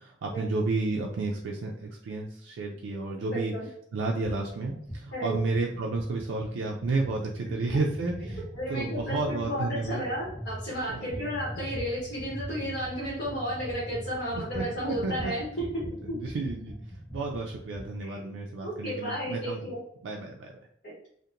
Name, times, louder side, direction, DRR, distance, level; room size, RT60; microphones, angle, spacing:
voice 1, 0.0-3.5 3.9-10.0 10.9-11.3 14.3-15.3 15.8-16.8 17.1-19.7 20.0-20.5, right 3 dB, 80° right, 0 dB, 0.3 m, -32 dB
voice 2, 3.3-3.6 5.1-5.4 8.5-15.7 16.1-16.2 18.0-18.2 18.6-19.8 20.8-20.9, equal, 50° left, -7 dB, 1.0 m, -33 dB
sound 1, 4.2-4.4 4.7-18.0, equal, 20° left, 1.0 m, -41 dB
2.8 x 2.1 x 2.4 m, 0.67 s
head